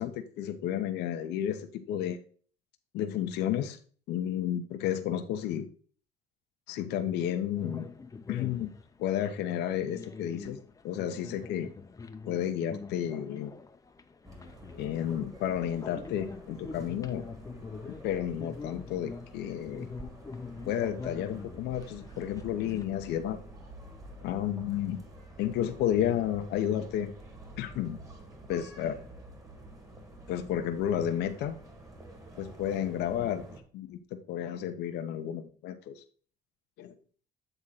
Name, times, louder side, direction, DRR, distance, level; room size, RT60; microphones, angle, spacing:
voice 1, 0.0-2.2 2.9-3.8 4.1-5.7 6.7-7.9 8.3-8.7 9.0-11.7 12.3-13.5 14.8-17.2 18.0-19.9 20.7-23.4 24.2-25.0 25.4-27.1 27.6-28.0 28.5-29.0 30.3-31.5 32.4-34.0 34.3-36.0 36.8-36.9, left 10 dB, 85° left, 6 dB, 0.8 m, -32 dB
sound 1, 7.6-22.8, left 4 dB, 20° left, 0.6 m, -45 dB
sound 2, 14.2-33.6, right 1 dB, 20° right, 1.9 m, -49 dB
8.0 x 3.7 x 5.6 m, 0.43 s
cardioid pair, 110°, 17 cm